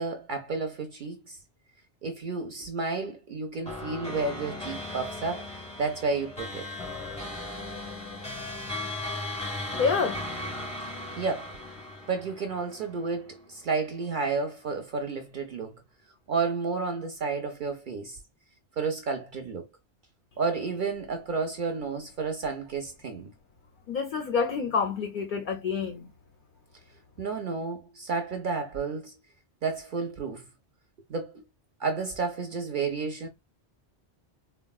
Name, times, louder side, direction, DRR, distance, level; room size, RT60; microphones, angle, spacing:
voice 1, 0.0-1.4 2.0-5.5 5.8-6.7 11.2-11.6 12.1-15.8 16.3-18.2 18.8-19.7 20.4-23.3 27.2-29.1 29.6-30.5 31.1-31.4 31.8-33.3, right 4 dB, 60° right, 0.6 m, -31 dB
sound 1, 3.7-13.3, left 2 dB, 5° left, 0.7 m, -37 dB
voice 2, 9.8-10.2 10.5-10.7 23.9-26.0, left 5 dB, 55° left, 0.6 m, -28 dB
3.6 x 2.2 x 2.2 m
omnidirectional pair, 1.1 m